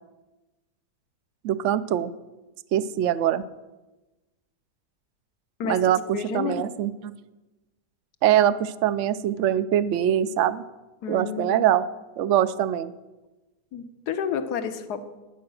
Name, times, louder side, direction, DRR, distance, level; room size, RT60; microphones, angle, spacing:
voice 1, 1.4-2.1 2.7-3.4 5.6-7.1 8.2-10.6 11.1-11.8 12.2-12.9, right 11 dB, 65° right, 15 dB, 0.8 m, -23 dB
voice 2, 5.6-6.7 11.0-11.7 13.7-15.0, left 7 dB, 80° left, 10 dB, 1.4 m, -30 dB
13.0 x 9.6 x 6.3 m, 1.1 s
omnidirectional pair, 1.7 m